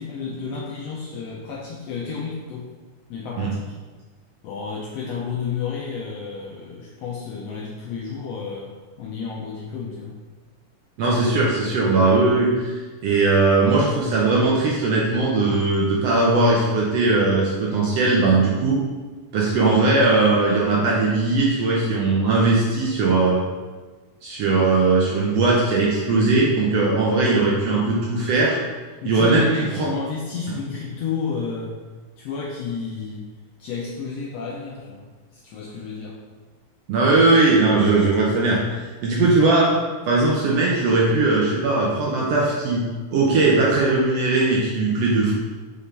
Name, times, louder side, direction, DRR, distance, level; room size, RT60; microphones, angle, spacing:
voice 1, 0.0-2.7 3.1-3.6 4.4-8.7 9.0-10.2 19.6-19.8 28.2-28.3 29.0-31.7 32.2-33.2 33.6-35.1 35.3-36.2, left 5 dB, 80° left, -2 dB, 1.5 m, -31 dB
voice 2, 11.0-18.8 19.3-23.4 24.2-28.6 29.0-29.9 36.9-42.8 43.1-45.3, right 3 dB, 70° right, -3 dB, 1.5 m, -19 dB
5.6 x 5.2 x 3.3 m, 1.4 s
omnidirectional pair, 3.5 m